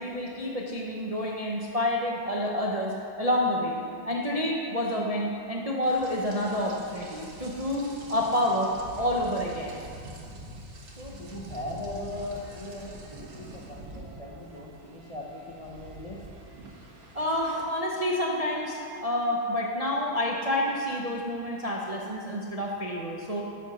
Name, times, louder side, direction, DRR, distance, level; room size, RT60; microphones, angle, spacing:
voice 1, 0.0-3.8 4.1-9.8 17.1-23.4, left 1 dB, 30° right, -2 dB, 0.6 m, -28 dB
Rain, 5.8-17.6, right 1 dB, 80° right, 2.2 m, -45 dB
voice 2, 11.0-16.2, left 2 dB, 30° left, -2 dB, 0.6 m, -39 dB
10.5 x 8.2 x 6.3 m, 2.5 s
omnidirectional pair, 2.1 m